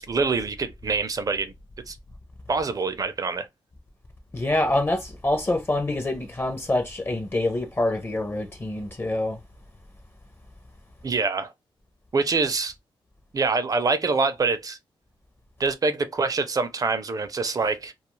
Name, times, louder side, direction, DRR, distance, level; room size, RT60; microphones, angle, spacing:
voice 1, 0.0-1.5 1.9-2.0 2.5-3.5 11.0-11.5 12.1-12.7 13.3-14.8 15.6-17.9, right 4 dB, 40° right, 0.5 m, -25 dB
voice 2, 4.3-9.4, left 1 dB, 25° left, 0.6 m, -26 dB
2.3 x 2.3 x 3.0 m
cardioid pair, 85°, 10 cm